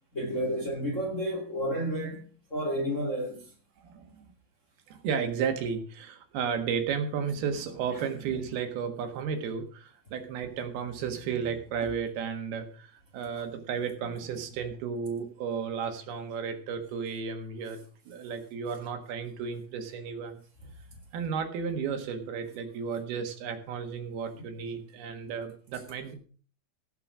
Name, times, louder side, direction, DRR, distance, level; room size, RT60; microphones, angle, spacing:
voice 1, 0.1-3.5 24.4-24.5, equal, 25° left, 2.4 m, -31 dB
voice 2, 3.8-4.3 4.9-17.8 18.1-20.4 21.1-26.2, right 6 dB, 80° right, 3.5 m, -33 dB
17.0 x 6.0 x 6.1 m
omnidirectional pair, 4.4 m